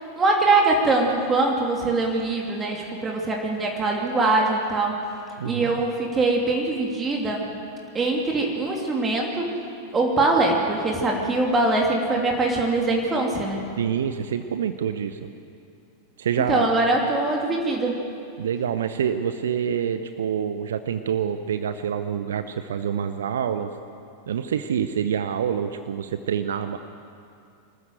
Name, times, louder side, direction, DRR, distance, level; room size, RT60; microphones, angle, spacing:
voice 1, 0.2-5.0 5.4-7.5 7.9-9.5 9.9-13.7 16.5-18.0, right 2 dB, 20° right, 0 dB, 2.8 m, -22 dB
voice 2, 5.4-5.8 13.8-15.2 16.2-16.8 18.4-23.7 24.3-26.8, right 8 dB, 65° right, 10 dB, 0.8 m, -26 dB
24.5 x 14.0 x 7.9 m, 2.5 s
figure-of-eight pair, 90°, 0 cm